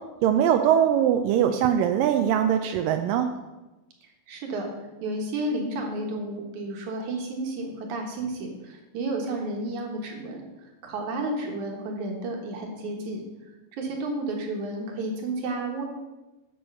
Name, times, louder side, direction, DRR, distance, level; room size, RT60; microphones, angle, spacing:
voice 1, 0.2-3.3, right 9 dB, 80° right, 6 dB, 2.2 m, -21 dB
voice 2, 4.3-4.7 5.0-10.5 10.8-13.2 13.7-15.8, right 2 dB, 60° right, 2 dB, 2.7 m, -31 dB
10.0 x 7.1 x 5.5 m, 1.1 s
omnidirectional pair, 4.1 m